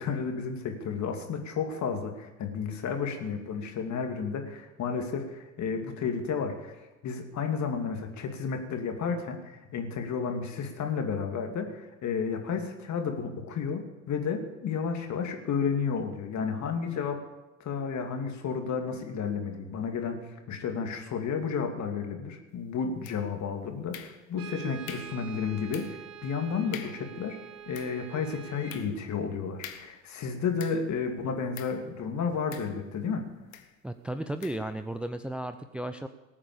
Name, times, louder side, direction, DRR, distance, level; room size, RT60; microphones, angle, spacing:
voice 1, 0.0-6.7 7.0-17.2 17.6-27.4 27.7-33.3, left 6 dB, 45° left, 4 dB, 2.6 m, -32 dB
sound 1, 23.0-23.5 23.9-24.5 24.9-25.2 25.7-26.1 26.4-26.5 26.7-27.1 27.6-31.0 31.5-31.9 32.5-33.1 33.5-33.8 34.4-34.7, left 10 dB, 75° left, 1.3 m, -46 dB
Brass instrument, 24.3-28.9, right 9 dB, 55° right, 1.7 m, -45 dB
voice 2, 33.8-36.1, right 1 dB, 5° right, 9 dB, 0.6 m, -34 dB
19.0 x 8.6 x 7.1 m, 1.1 s
figure-of-eight pair, 65°, 41 cm